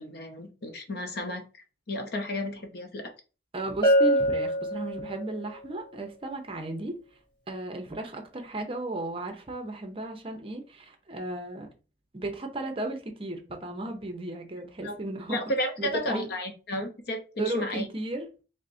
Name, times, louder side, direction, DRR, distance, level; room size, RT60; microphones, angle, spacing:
voice 1, 0.0-1.4 1.9-3.1 14.8-14.9 15.3-17.9, left 1 dB, 65° left, 0.7 m, -32 dB
voice 2, 3.5-7.0 7.5-11.7 12.1-15.4 15.8-16.3 17.4-18.3, right 2 dB, 30° right, 0.6 m, -35 dB
Bell, 3.8-5.5, equal, 30° left, 1.3 m, -24 dB
5.2 x 2.1 x 2.6 m
head